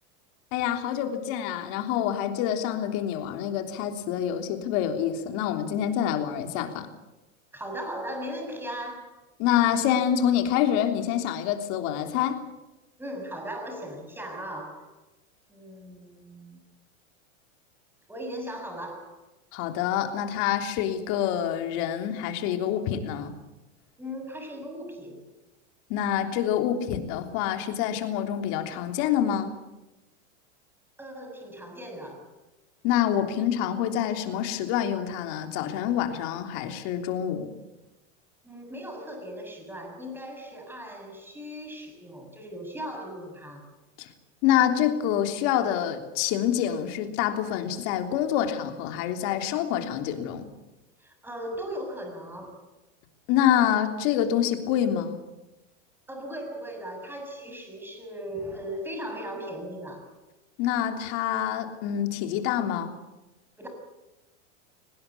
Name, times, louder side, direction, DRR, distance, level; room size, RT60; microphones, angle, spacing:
voice 1, 0.5-6.9 9.4-12.4 19.5-23.3 25.9-29.5 32.8-37.5 44.0-44.1 44.4-50.4 53.3-55.2 60.6-62.9, left 10 dB, 55° left, 6 dB, 3.4 m, -26 dB
voice 2, 7.5-9.2 13.0-14.9 15.5-16.6 18.1-19.2 24.0-25.2 31.0-32.3 38.4-43.6 51.0-52.5 56.1-60.1 63.6-63.7, equal, 5° right, 4 dB, 7.1 m, -38 dB
23.5 x 20.0 x 8.4 m, 1.0 s
supercardioid pair, 125°, 36 cm